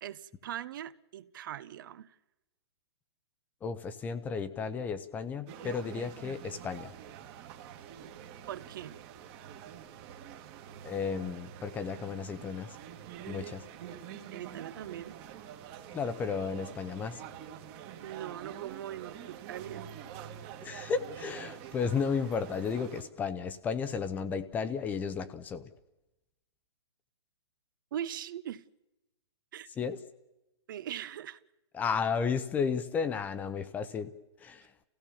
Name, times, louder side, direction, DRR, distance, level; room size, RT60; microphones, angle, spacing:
voice 1, 0.0-2.1 8.5-9.0 13.8-14.0 14.3-15.2 18.0-19.8 27.9-28.6 29.5-29.7 30.7-31.4, right 11 dB, 45° right, 0.8 m, -41 dB
voice 2, 3.6-6.9 10.8-12.8 13.3-13.6 15.9-17.2 20.6-25.7 29.8-30.0 31.7-34.1 34.4-34.7, left 6 dB, 10° left, 0.7 m, -33 dB
sound 1, 5.5-23.0, right 9 dB, 30° right, 1.6 m, -46 dB
28.0 x 16.5 x 7.1 m
hypercardioid pair, 160°, 15 cm